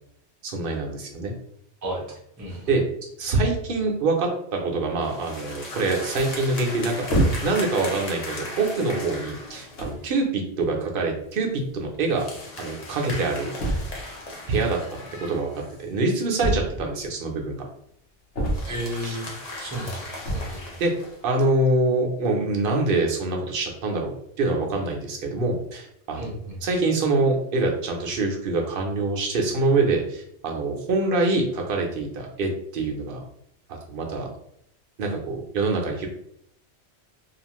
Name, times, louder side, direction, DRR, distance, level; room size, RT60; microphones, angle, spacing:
voice 1, 0.4-1.3 2.7-2.8 3.2-7.1 7.4-12.3 12.6-13.5 14.5-17.6 19.0-19.2 20.8-20.9 21.2-26.3 26.6-33.2 33.7-34.3 35.0-36.1, right 3 dB, 55° right, 1 dB, 0.7 m, -25 dB
voice 2, 2.4-2.7 18.7-19.3 19.6-20.8 26.2-26.6, right 1 dB, 20° right, -2 dB, 0.6 m, -33 dB
sound 1, 2.5-2.8 5.0-10.0 12.1-16.0 18.5-21.2, left 2 dB, 40° left, 0.6 m, -38 dB
sound 2, 7.1-7.7 8.5-8.6 9.4-9.5 9.8-10.1 11.3-11.4 11.6-11.7 11.9-12.0 13.6-14.1 16.4-17.1 18.3-19.0 20.2-20.6, right 1 dB, 85° left, 1.0 m, -26 dB
2.5 x 2.4 x 2.9 m, 0.71 s
omnidirectional pair, 1.2 m